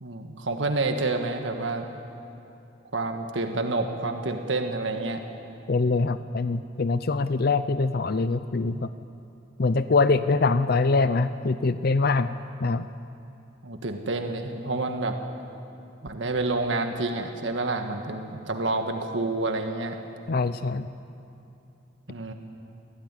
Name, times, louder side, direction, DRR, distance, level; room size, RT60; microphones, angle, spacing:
voice 1, 0.0-1.9 2.9-5.2 13.6-15.2 16.0-20.0 22.1-22.3, right 2 dB, 75° right, 5 dB, 1.6 m, -28 dB
voice 2, 5.7-8.9 9.6-12.3 12.6-12.9 20.3-20.9, left 3 dB, 55° left, 12 dB, 0.6 m, -23 dB
23.0 x 16.5 x 9.8 m, 2.8 s
head